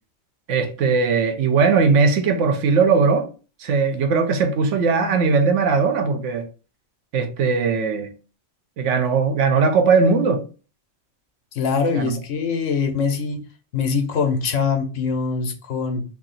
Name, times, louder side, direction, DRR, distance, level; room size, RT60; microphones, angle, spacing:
voice 1, 0.5-3.3 3.6-6.5 7.1-8.1 8.8-10.4 11.9-12.2, right 5 dB, 80° right, 1.0 m, -19 dB
voice 2, 11.5-13.4 13.7-16.0, left 5 dB, 90° left, 1.1 m, -23 dB
2.8 x 2.7 x 3.9 m
omnidirectional pair, 1.2 m